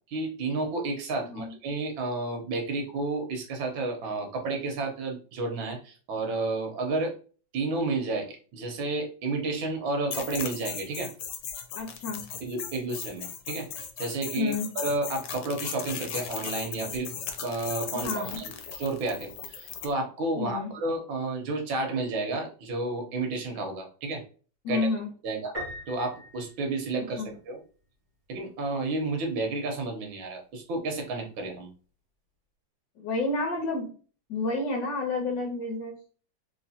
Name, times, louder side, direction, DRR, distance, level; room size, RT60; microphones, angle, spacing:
voice 1, 0.1-7.1 7.5-11.1 12.4-17.1 17.4-24.2 24.7-24.9 25.2-25.5 25.9-27.6 28.3-31.7, right 3 dB, 80° right, 3 dB, 1.7 m, -31 dB
sound 1, 10.1-19.9, left 7 dB, 90° left, 1.4 m, -37 dB
voice 2, 11.7-12.2 14.4-14.7 17.9-18.4 20.4-20.7 24.6-25.1 27.2-27.3 33.0-33.9 34.3-36.0, left 3 dB, 70° left, -1 dB, 1.5 m, -30 dB
Piano, 25.5-27.4, equal, 25° right, 1.5 m, -40 dB
3.7 x 3.1 x 2.7 m, 0.39 s
omnidirectional pair, 2.1 m